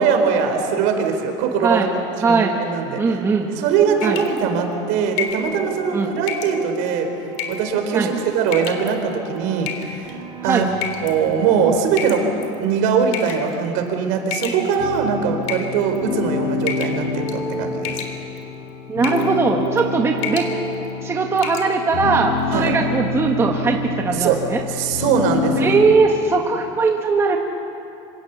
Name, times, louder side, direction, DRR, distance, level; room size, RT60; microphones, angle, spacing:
voice 1, 0.0-1.9 2.2-3.0 3.6-7.1 7.5-10.7 11.0-12.2 12.6-18.0 22.5-22.7 24.2-24.4 24.7-25.8, right 6 dB, 60° right, 5 dB, 4.2 m, -21 dB
voice 2, 2.2-2.6 3.0-3.6 4.0-4.2 5.9-6.1 7.9-8.1 10.4-10.7 18.9-20.5 21.0-24.6 25.6-27.4, right 4 dB, 15° right, 1 dB, 1.5 m, -19 dB
sound 1, 3.5-14.7, right 6 dB, 80° right, 3.6 m, -39 dB
sound 2, 4.0-4.4 5.2-5.5 6.3-6.6 7.3-7.7 8.5-8.9 9.7-10.1 10.8-11.1 12.0-12.6 13.1-13.5 14.3-15.0 15.4-16.1 16.7-17.0 17.3-17.5 17.8-18.4 19.0-19.3 19.7-19.9 20.2-20.5 20.9-21.0 21.4-21.7, left 8 dB, 70° left, 3.3 m, -29 dB
sound 3, 14.8-25.8, left 4 dB, 90° left, 5.0 m, -27 dB
27.0 x 25.5 x 7.0 m, 2.8 s
supercardioid pair, 145°, 15 cm